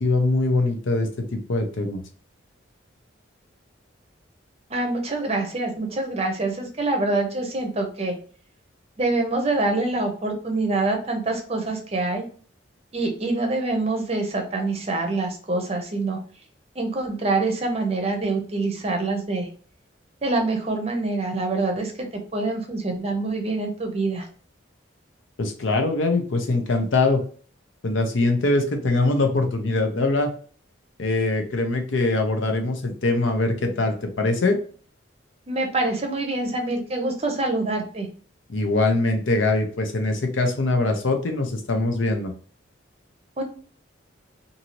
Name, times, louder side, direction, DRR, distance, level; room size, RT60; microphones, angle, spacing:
voice 1, 0.0-2.0 25.4-27.2 27.8-30.3 31.0-34.6 38.5-42.3, left 2 dB, 75° left, 5 dB, 0.6 m, -22 dB
voice 2, 4.7-8.1 9.0-12.2 12.9-16.2 16.8-19.5 20.2-24.3 35.5-38.1 43.4-43.5, right 2 dB, 30° right, 3 dB, 0.6 m, -25 dB
2.7 x 2.6 x 2.9 m, 0.43 s
head